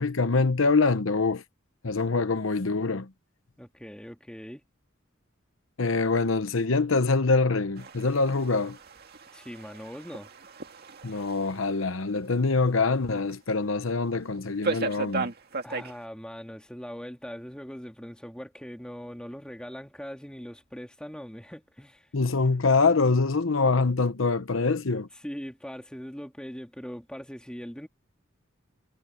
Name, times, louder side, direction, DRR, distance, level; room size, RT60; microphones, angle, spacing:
voice 1, 0.0-1.4 1.8-3.1 5.8-8.8 11.0-15.3 22.1-25.1, left 3 dB, 75° left, 0.9 m, -24 dB
voice 2, 3.6-4.6 9.3-10.3 15.6-22.1 25.2-27.9, equal, 5° left, 2.5 m, -41 dB
sound 1, 7.8-11.8 12.1-12.2 12.8-12.9 13.3-13.4 14.6-16.0, right 4 dB, 50° right, 2.1 m, -35 dB
head